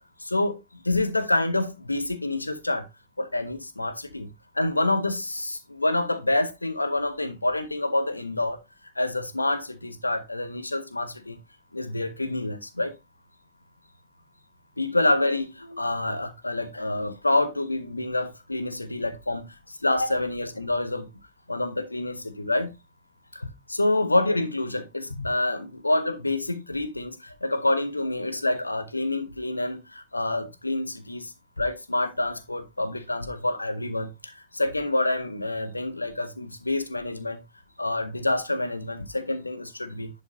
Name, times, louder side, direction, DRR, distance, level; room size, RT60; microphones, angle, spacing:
voice 1, 0.2-0.6 0.8-2.9 3.2-4.3 4.5-8.6 8.9-11.4 11.7-12.9 14.8-21.1 21.5-22.7 23.3-37.4 37.8-40.1, left 2 dB, 85° left, 1.0 m, -27 dB
10.5 x 5.3 x 2.6 m
figure-of-eight pair, 90°, 0 cm